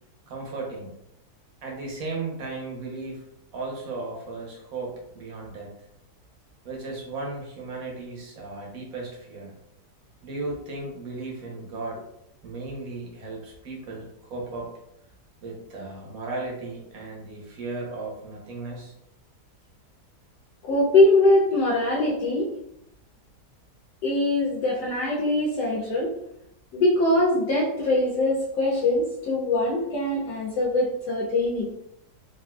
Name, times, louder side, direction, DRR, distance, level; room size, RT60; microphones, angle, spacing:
voice 1, 0.3-0.9 1.6-3.2 3.5-5.7 6.6-9.5 10.2-12.0 12.4-14.7 15.4-18.9, right 3 dB, 60° right, -1 dB, 1.2 m, -35 dB
voice 2, 20.6-22.5 24.0-26.1 26.7-31.7, left 2 dB, 75° left, -4 dB, 1.2 m, -22 dB
3.6 x 2.5 x 2.3 m, 0.80 s
omnidirectional pair, 1.8 m